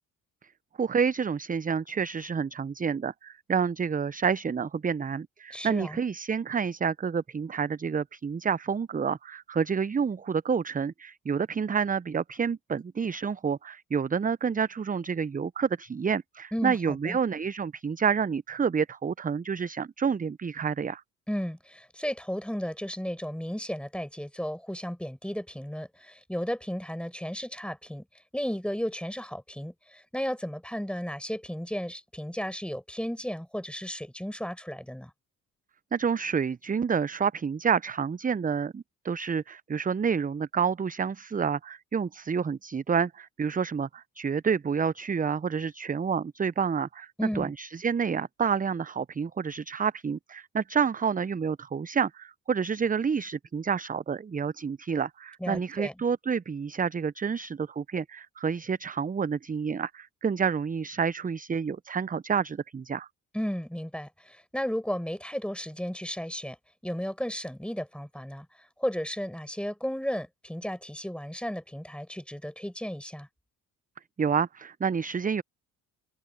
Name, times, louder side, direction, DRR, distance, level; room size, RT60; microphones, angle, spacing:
voice 1, 0.8-21.0 35.9-63.1 74.2-75.4, right 6 dB, 20° right, 0.7 m, -29 dB
voice 2, 5.5-6.0 16.5-17.2 21.3-28.0 28.3-35.1 47.2-47.5 55.4-55.9 63.3-66.6 66.8-68.5 68.8-73.3, equal, ahead, 7.2 m, -34 dB
open air
hypercardioid pair, 45°, 42 cm